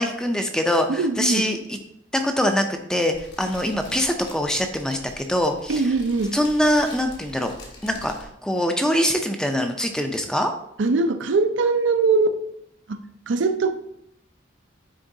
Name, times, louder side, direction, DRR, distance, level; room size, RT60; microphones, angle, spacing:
voice 1, 0.0-1.8 2.1-5.9 6.3-7.5 7.8-10.5, equal, 5° left, 5 dB, 0.4 m, -23 dB
voice 2, 0.9-1.5 5.7-6.3 10.8-12.4 12.9-13.0 13.3-13.7, right 3 dB, 80° right, 8 dB, 0.5 m, -21 dB
Fire, 3.1-8.2, left 1 dB, 60° left, 1.5 m, -44 dB
9.8 x 3.8 x 2.7 m, 0.75 s
head